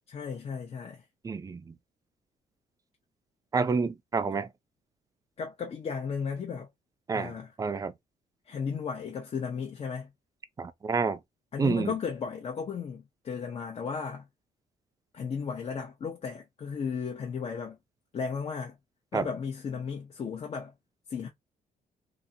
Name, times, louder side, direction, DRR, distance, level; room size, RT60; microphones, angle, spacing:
voice 1, 0.1-1.0 5.4-6.7 7.1-7.5 8.5-10.1 11.5-14.3 15.1-17.8 18.1-18.8 19.1-20.7 21.1-21.3, left 6 dB, 40° left, 0.6 m, -35 dB
voice 2, 1.2-1.8 3.5-4.5 7.1-7.9 10.6-11.2 11.6-11.9 19.1-19.3, right 4 dB, 25° right, 0.4 m, -29 dB
2.6 x 2.5 x 2.7 m
cardioid pair, 115°, 15 cm